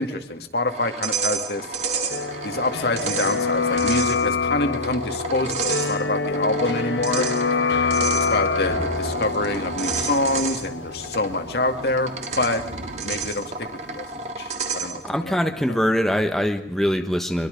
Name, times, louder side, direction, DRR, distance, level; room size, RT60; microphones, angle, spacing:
voice 1, 0.0-1.7 2.4-7.3 8.3-12.6 13.0-15.4 15.7-15.8, left 2 dB, 65° left, 6 dB, 2.1 m, -26 dB
sound 1, 0.7-15.2, right 5 dB, 40° right, 2.2 m, -31 dB
sound 2, 2.1-13.8 14.1-14.2, left 4 dB, 80° left, 1.0 m, -27 dB
Thunder, 5.6-15.6, right 1 dB, 75° right, 2.4 m, -42 dB
voice 2, 15.0-17.5, equal, ahead, 5 dB, 1.2 m, -23 dB
25.5 x 22.5 x 5.3 m, 0.72 s
head